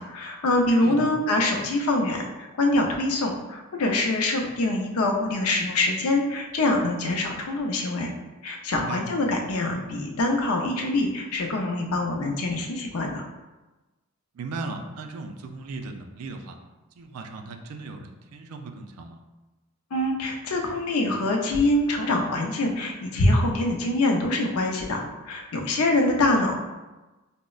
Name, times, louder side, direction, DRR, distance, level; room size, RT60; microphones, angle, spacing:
voice 1, 0.0-8.1 8.4-13.2 19.9-26.5, left 2 dB, 80° left, 2 dB, 0.5 m, -24 dB
voice 2, 0.8-1.1 8.8-9.0 14.3-16.6 17.0-19.2 26.4-26.5, right 3 dB, 85° right, 4 dB, 0.4 m, -37 dB
5.1 x 2.0 x 2.3 m, 1.1 s
head